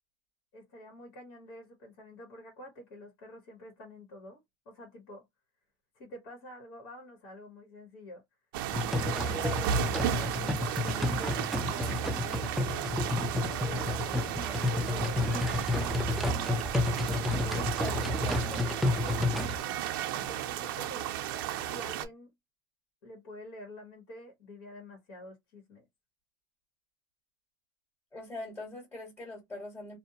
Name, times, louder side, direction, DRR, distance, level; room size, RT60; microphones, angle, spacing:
voice 1, 0.5-5.2 5.9-8.2 8.8-10.3 10.8-15.4 20.1-21.3 21.7-22.3 23.0-25.8, equal, 70° left, 1.2 m, -48 dB
sound 1, 8.5-22.1, right 10 dB, 90° right, 0.5 m, -34 dB
sound 2, 8.7-19.6, left 2 dB, ahead, 0.4 m, -31 dB
voice 2, 17.4-18.6 28.1-30.0, left 2 dB, 15° left, 1.5 m, -43 dB
2.5 x 2.1 x 2.7 m
supercardioid pair, 140°, 12 cm